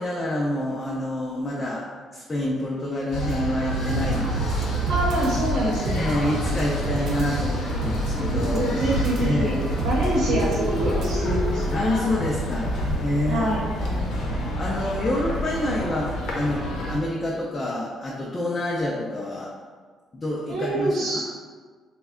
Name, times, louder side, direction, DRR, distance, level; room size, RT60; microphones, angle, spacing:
voice 1, 0.0-4.9 6.0-8.6 9.2-9.9 11.7-12.7 13.0-13.5 13.8-14.1 14.3-19.5 20.1-21.2, left 1 dB, 20° left, -4 dB, 0.4 m, -28 dB
sound 1, 3.1-17.0, right 1 dB, 80° left, 0.6 m, -28 dB
sound 2, 3.9-11.6, right 1 dB, 55° right, 0.4 m, -30 dB
voice 2, 4.9-6.1 8.4-11.6 13.3-13.6 20.5-21.2, right 1 dB, 80° right, -5 dB, 0.8 m, -26 dB
sound 3, 8.1-12.1, left 1 dB, 45° left, 0.7 m, -32 dB
3.4 x 2.1 x 3.5 m, 1.5 s
cardioid pair, 155°, 0 cm